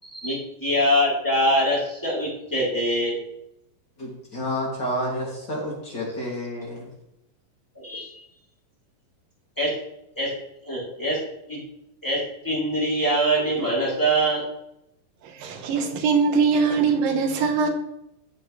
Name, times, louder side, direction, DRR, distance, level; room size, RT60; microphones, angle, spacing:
voice 1, 0.0-3.2 7.7-8.1 9.6-9.7 10.2-10.3 10.6-11.2 11.5-11.6 12.0-14.4, equal, 5° left, -6 dB, 3.1 m, -23 dB
voice 2, 4.0-6.9, equal, 35° left, -4 dB, 3.1 m, -30 dB
voice 3, 15.2-17.7, right 5 dB, 85° right, 5 dB, 2.9 m, -22 dB
15.5 x 7.2 x 3.3 m, 0.85 s
omnidirectional pair, 3.9 m